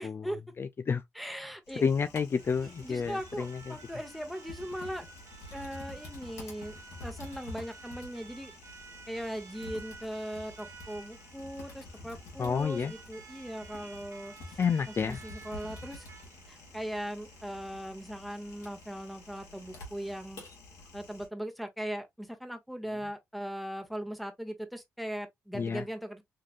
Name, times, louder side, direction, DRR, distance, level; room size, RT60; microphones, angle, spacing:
voice 1, 0.0-0.4 1.1-1.8 2.6-5.0 5.5-6.7 7.0-8.5 9.1-14.6 14.9-16.0 16.5-20.4 20.9-26.2, equal, ahead, 1.2 m, -39 dB
voice 2, 0.6-1.0 1.8-3.8 12.4-12.9 14.6-15.2 25.5-25.8, left 6 dB, 45° left, 0.4 m, -30 dB
Typing, 1.7-21.3, left 2 dB, 85° left, 1.8 m, -49 dB
sound 1, 2.4-19.9, right 5 dB, 60° right, 0.9 m, -53 dB
3.8 x 3.2 x 2.5 m
supercardioid pair, 55°, 6 cm